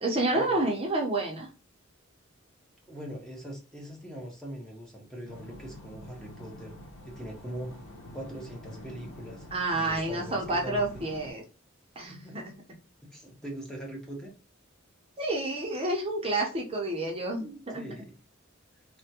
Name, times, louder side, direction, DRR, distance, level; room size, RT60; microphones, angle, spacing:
voice 1, 0.0-1.5 9.5-11.4 12.0-12.4 15.2-17.8, right 2 dB, 30° right, 0 dB, 0.6 m, -29 dB
voice 2, 2.9-6.7 7.0-7.7 8.1-9.5 9.7-11.0 12.1-12.5 13.1-14.3 17.7-18.1, right 1 dB, 5° left, -2 dB, 0.7 m, -41 dB
sound 1, 5.3-11.3, left 1 dB, 80° left, 0.8 m, -46 dB
3.4 x 2.2 x 2.7 m, 0.33 s
head